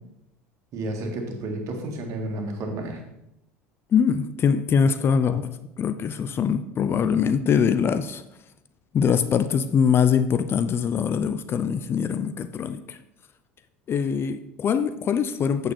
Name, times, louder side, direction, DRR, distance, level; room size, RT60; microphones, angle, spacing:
voice 1, 0.7-3.0, right 1 dB, 50° right, 2.0 m, -31 dB
voice 2, 3.9-5.5 5.8-8.2 8.9-13.0 13.9-15.7, left 7 dB, 35° left, 0.6 m, -23 dB
8.5 x 6.5 x 4.2 m
hypercardioid pair, 75°, 7 cm